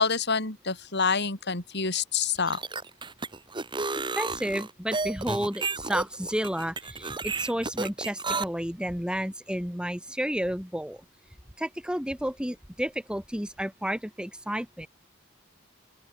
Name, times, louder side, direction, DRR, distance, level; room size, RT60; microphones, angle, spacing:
voice 1, 0.0-2.6, left 5 dB, 55° left, 4.7 m, -27 dB
sound 1, 2.4-8.4, right 4 dB, 25° right, 1.5 m, -32 dB
voice 2, 3.9-11.0 11.6-14.9, equal, 5° right, 5.4 m, -31 dB
open air
head